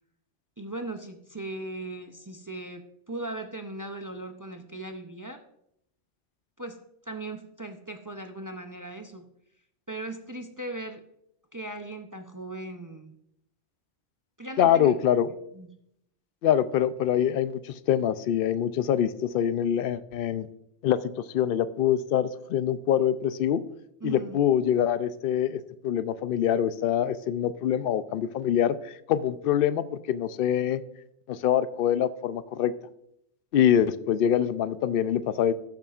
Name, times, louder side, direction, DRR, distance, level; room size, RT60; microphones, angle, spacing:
voice 1, 0.6-5.4 6.6-9.2 9.9-11.0 11.5-13.2 14.4-14.9 15.5-15.7 24.0-24.4, right 2 dB, 30° right, 5 dB, 0.4 m, -38 dB
voice 2, 14.6-15.3 16.4-20.5 20.8-23.6 24.0-30.8 31.3-32.7 33.5-35.5, left 10 dB, 60° left, 14 dB, 0.6 m, -25 dB
17.0 x 7.0 x 2.4 m, 0.77 s
omnidirectional pair, 1.2 m